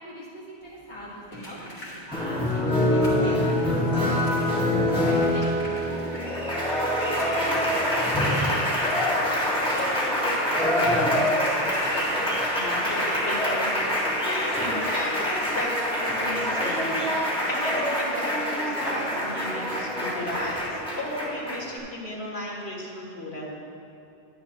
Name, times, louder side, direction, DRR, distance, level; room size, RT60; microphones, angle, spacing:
voice 1, 0.0-4.2 5.3-5.5 5.8-12.0, left 1 dB, 50° left, -9 dB, 1.9 m, -40 dB
sound 1, 0.6-13.1 14.6-14.7 15.0-15.1 15.5-15.6, left 1 dB, 65° left, 2.3 m, -45 dB
Applause, 2.1-21.8, left 1 dB, 5° left, 1.6 m, -25 dB
voice 2, 5.1-5.6 12.5-23.5, left 1 dB, 85° left, -3 dB, 2.0 m, -35 dB
11.0 x 10.5 x 2.9 m, 2.7 s
omnidirectional pair, 1.1 m